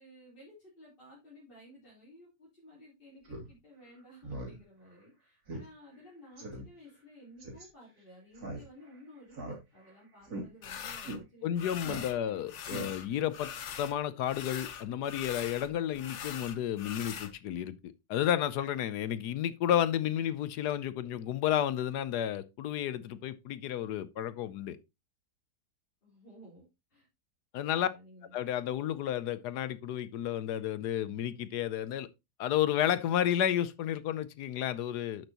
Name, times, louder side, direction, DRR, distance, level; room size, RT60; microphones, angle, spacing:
voice 1, 0.0-12.6 26.0-26.6 26.9-27.1 27.8-28.3, left 1 dB, 30° left, 4.0 m, -55 dB
Speech synthesizer, 3.2-3.5 3.8-3.9 4.2-4.6 4.9-5.0 5.5-5.6 5.9-6.0 6.4-6.6 7.4-7.6 8.3-8.9 9.3-9.9 10.2-10.4 11.0-11.2 11.8-12.3 12.6-13.2, right 2 dB, 60° right, 3.2 m, -40 dB
sound 1, 10.6-11.2 11.6-12.2 12.5-14.0 14.2-17.3, left 8 dB, 55° left, 1.0 m, -42 dB
voice 2, 11.4-13.5 13.8-24.8 27.5-27.9 28.3-32.1 32.4-35.3, left 10 dB, 75° left, 1.2 m, -32 dB
11.5 x 6.2 x 2.9 m
omnidirectional pair, 1.8 m